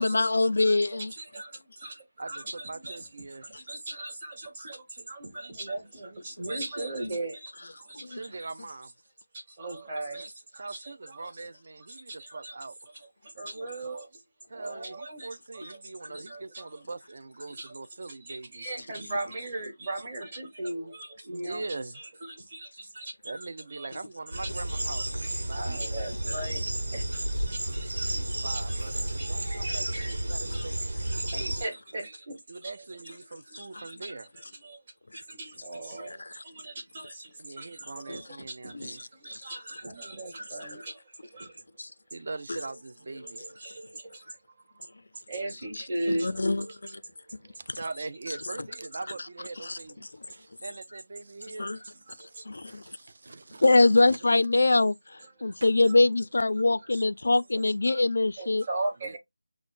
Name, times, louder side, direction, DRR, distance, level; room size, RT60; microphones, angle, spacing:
voice 1, 0.0-1.1 8.0-8.2 36.1-36.3 38.7-38.9 39.3-39.4 41.8-41.9 46.1-46.7 46.9-47.0 49.6-49.8 51.6-51.8 52.5-52.8 53.6-55.0 55.4-58.6, left 2 dB, 60° left, 0.3 m, -23 dB
voice 2, 0.6-3.1 3.4-8.5 9.3-11.3 11.9-12.5 13.2-14.2 14.5-15.3 15.5-16.8 17.5-17.7 18.1-21.7 21.9-23.4 23.7-23.9 24.3-28.8 29.1-29.3 29.6-30.6 31.0-32.7 33.0-33.1 33.5-34.8 35.1-41.6 43.1-44.4 45.3-47.5 48.0-49.1 51.6-52.7 55.2-55.5 55.9-56.0 56.6-57.0 57.8-58.0 58.4-59.2, right 2 dB, 25° right, 1.1 m, -39 dB
voice 3, 2.2-3.5 8.0-8.9 10.6-12.8 14.5-18.7 21.3-22.0 23.2-25.8 28.0-31.6 32.5-34.3 37.4-39.0 42.1-43.6 47.4-51.8 52.1-54.3 55.6-55.7 59.1-59.2, right 3 dB, 45° right, 0.3 m, -42 dB
sound 1, 24.3-31.6, right 1 dB, 75° right, 1.3 m, -31 dB
6.0 x 2.0 x 2.4 m
figure-of-eight pair, 175°, 0 cm